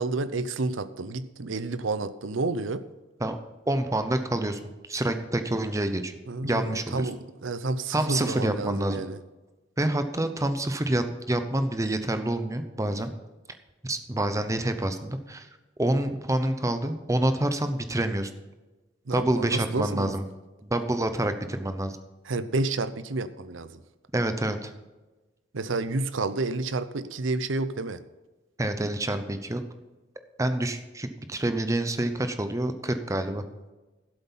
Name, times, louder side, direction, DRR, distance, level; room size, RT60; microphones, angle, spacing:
voice 1, 0.0-2.8 6.3-9.2 19.1-20.2 22.3-23.7 25.5-28.0, right 3 dB, 85° right, 13 dB, 0.7 m, -30 dB
voice 2, 3.7-4.6 4.9-6.1 6.4-7.1 7.9-9.0 9.8-13.1 13.8-15.5 15.8-18.3 19.1-20.2 20.6-22.0 24.1-24.7 28.6-29.6 30.4-33.4, right 1 dB, 15° right, 9 dB, 0.8 m, -27 dB
12.5 x 8.0 x 5.6 m, 1.1 s
head